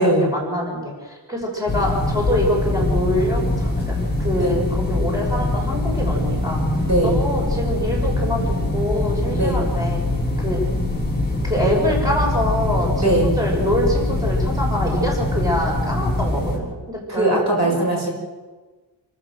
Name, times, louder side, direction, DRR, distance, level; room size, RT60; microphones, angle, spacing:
voice 1, 0.0-6.6 7.0-10.0 10.4-10.6 11.4-17.7, equal, 10° right, -1 dB, 6.0 m, -25 dB
sound 1, 1.7-16.6, left 2 dB, 20° left, 6.9 m, -23 dB
voice 2, 6.8-7.1 9.3-9.6 13.0-13.3 17.1-18.1, right 1 dB, 40° right, 0 dB, 5.9 m, -19 dB
28.5 x 14.0 x 7.6 m, 1.3 s
wide cardioid pair, 155°, 44 cm